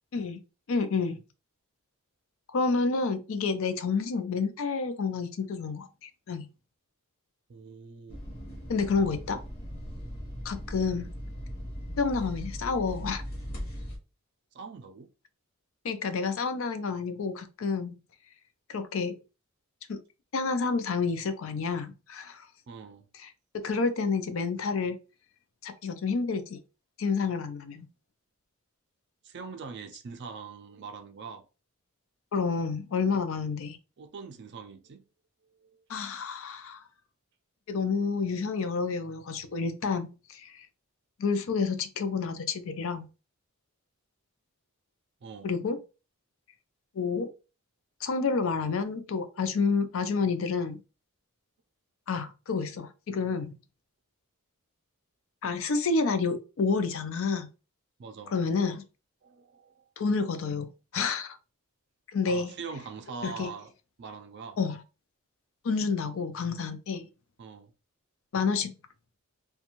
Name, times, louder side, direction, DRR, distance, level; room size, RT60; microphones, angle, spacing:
voice 1, 0.7-1.2 2.5-6.5 8.7-9.4 10.4-11.1 12.0-13.2 15.8-18.0 18.7-19.1 19.9-20.0 20.3-22.5 23.2-23.3 23.6-25.0 25.6-26.6 27.0-27.9 32.3-33.8 35.9-36.8 37.7-40.7 41.2-43.1 45.4-45.8 46.9-47.3 48.0-50.8 52.1-53.5 55.4-57.5 58.3-58.8 60.0-61.4 62.1-62.5 63.2-63.5 64.6-64.8 65.6-67.1 68.3-68.7, left 4 dB, 65° left, 0.4 m, -29 dB
voice 2, 7.5-8.2 14.5-15.1 22.7-23.1 29.2-31.4 34.0-35.0 35.6-35.8 45.2-45.5 58.0-58.4 59.2-59.8 62.3-63.7 64.0-64.6 67.4-67.7, right 5 dB, 50° right, 0.4 m, -43 dB
sound 1, 8.1-14.0, equal, 45° left, 0.9 m, -39 dB
2.5 x 2.2 x 2.9 m
head